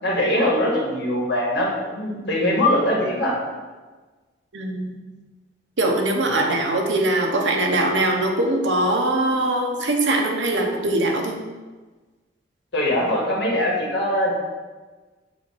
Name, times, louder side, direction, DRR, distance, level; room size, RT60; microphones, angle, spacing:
voice 1, 0.0-3.4 12.7-14.3, left 1 dB, 70° left, -4 dB, 1.7 m, -22 dB
voice 2, 4.5-4.9 5.8-11.4, right 2 dB, 85° right, 2 dB, 0.9 m, -22 dB
7.0 x 2.6 x 5.6 m, 1.3 s
head